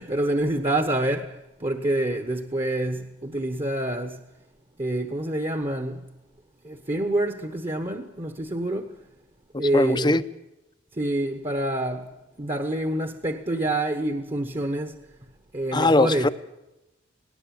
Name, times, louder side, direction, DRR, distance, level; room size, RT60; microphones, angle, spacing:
voice 1, 0.0-4.2 4.8-6.0 6.6-9.0 9.6-10.2 10.9-12.1 12.4-15.0 15.5-16.3, right 1 dB, 25° right, 1.1 m, -27 dB
voice 2, 9.5-10.2 15.7-16.3, left 2 dB, 25° left, 0.7 m, -21 dB
18.5 x 18.5 x 7.7 m
head